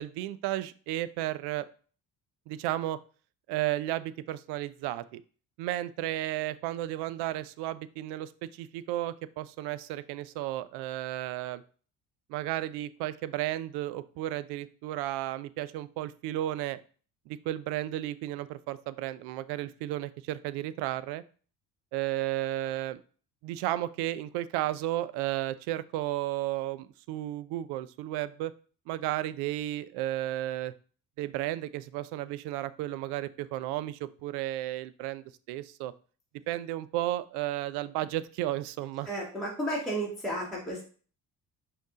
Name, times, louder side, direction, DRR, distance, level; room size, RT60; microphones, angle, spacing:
voice 1, 0.0-1.7 2.5-3.0 3.5-5.2 5.6-11.6 12.3-16.8 17.3-21.2 21.9-23.0 23.4-28.5 28.9-30.7 31.2-35.9 36.5-39.1, right 14 dB, 55° right, 16 dB, 0.5 m, -33 dB
voice 2, 39.1-40.8, right 1 dB, ahead, -5 dB, 1.5 m, -32 dB
5.3 x 2.7 x 3.7 m, 0.41 s
figure-of-eight pair, 50°, 49 cm